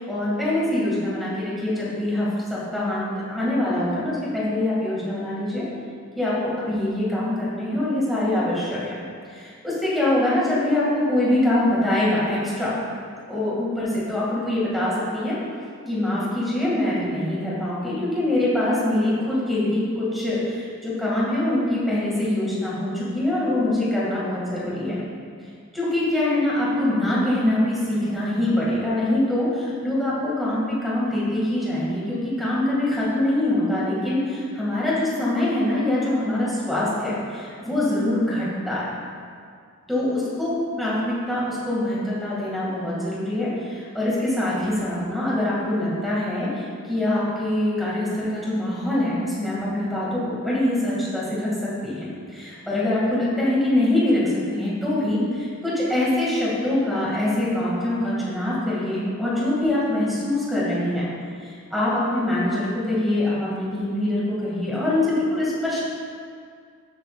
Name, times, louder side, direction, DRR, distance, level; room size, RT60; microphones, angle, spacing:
voice 1, 0.0-5.6 6.2-9.0 9.3-12.8 13.3-15.4 15.9-25.0 25.7-38.9 39.9-61.1 61.4-65.8, left 1 dB, ahead, -8 dB, 2.3 m, -24 dB
13.0 x 6.9 x 2.5 m, 2.2 s
head